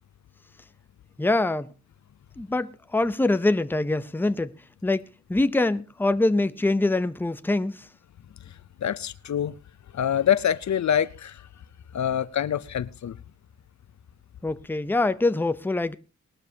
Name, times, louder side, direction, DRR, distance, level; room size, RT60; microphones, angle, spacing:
voice 1, 1.2-1.7 2.4-4.5 4.8-5.0 5.3-7.8 14.4-15.9, left 2 dB, 5° left, 0.6 m, -24 dB
voice 2, 8.8-9.5 9.9-11.4 11.9-13.2, left 9 dB, 70° left, 0.6 m, -25 dB
20.0 x 12.0 x 2.8 m
wide cardioid pair, 110°, 29 cm